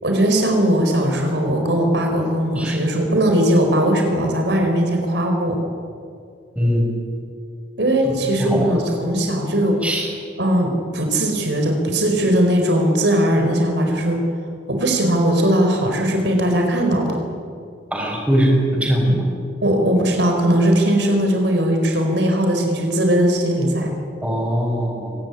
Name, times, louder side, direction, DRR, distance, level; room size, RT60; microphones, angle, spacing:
voice 1, 0.0-5.6 7.8-9.8 10.4-14.2 14.7-17.2 19.6-23.9, right 1 dB, 70° right, 3 dB, 4.5 m, -19 dB
voice 2, 6.5-6.9 8.4-8.8 9.8-10.1 17.9-19.2 24.2-25.2, equal, 10° right, -2 dB, 6.7 m, -20 dB
24.5 x 18.0 x 9.9 m, 2.3 s
head